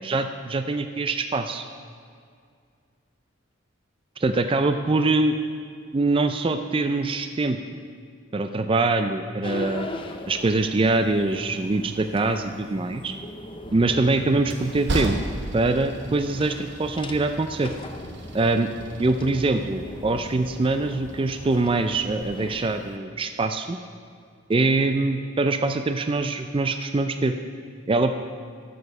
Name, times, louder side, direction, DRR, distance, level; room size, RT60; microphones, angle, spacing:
voice 1, 0.0-1.6 4.2-5.4 5.9-7.6 8.3-9.9 10.3-13.1 13.7-15.2 15.5-17.7 18.3-18.7 19.0-23.8 24.5-27.3 27.9-28.1, right 3 dB, 25° right, 8 dB, 0.4 m, -23 dB
sound 1, 9.4-23.0, left 2 dB, 25° left, 0.6 m, -40 dB
Train, 13.6-22.2, right 2 dB, 55° right, 0.9 m, -35 dB
13.0 x 6.9 x 5.4 m, 2.2 s
head